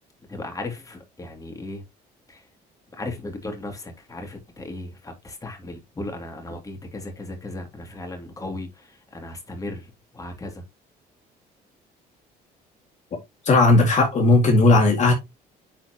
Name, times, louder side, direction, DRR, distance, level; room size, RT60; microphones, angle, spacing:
voice 1, 0.3-1.8 2.3-2.4 2.9-10.6, left 2 dB, 20° left, 2.6 m, -36 dB
voice 2, 13.5-15.1, left 2 dB, 45° left, 2.1 m, -16 dB
9.8 x 4.5 x 2.9 m
cardioid pair, 110°, 17 cm